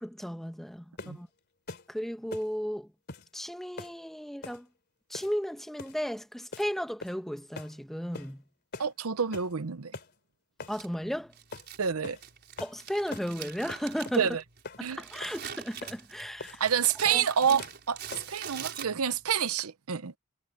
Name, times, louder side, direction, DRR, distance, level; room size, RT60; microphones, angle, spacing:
voice 1, 0.0-1.3 1.9-2.9 3.3-4.7 5.1-8.4 10.7-11.3 12.6-14.3 15.0-16.6 17.1-17.2, equal, ahead, 1.1 m, -35 dB
sound 1, 1.0-1.2 1.7-1.9 2.3-2.5 3.1-3.3 3.8-4.0 4.4-4.6 5.1-5.4 5.8-6.0 6.5-6.7 7.0-7.3 7.6-7.7 8.1-8.3 8.7-8.9 9.3-9.5 9.9-10.1 10.6-10.8 11.5-11.7 12.0-12.2 12.6-12.8 13.1-13.3 13.7-14.2 14.6-14.8 15.2-15.4 15.8-16.0 16.4-16.6 17.0-17.3 17.6-17.8 18.1-18.4, left 3 dB, 50° left, 3.0 m, -43 dB
voice 2, 8.8-10.0 11.8-12.2 14.2-14.4 14.8-15.0 16.6-20.1, right 7 dB, 90° right, 0.8 m, -28 dB
Crumpling crinkling, 10.7-19.3, right 8 dB, 50° right, 4.9 m, -44 dB
head